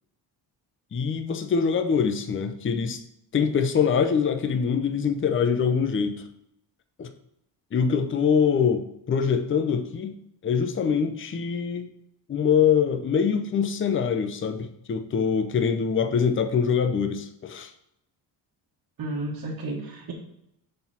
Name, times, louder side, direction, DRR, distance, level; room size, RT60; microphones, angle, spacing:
voice 1, 0.9-3.0 3.3-6.2 7.0-7.1 7.7-10.2 10.4-11.9 12.3-17.7, left 6 dB, 30° left, 7 dB, 0.7 m, -24 dB
voice 2, 19.0-20.1, right 2 dB, 55° right, -3 dB, 1.5 m, -32 dB
6.6 x 4.3 x 5.7 m, 0.81 s
cardioid pair, 100°, 41 cm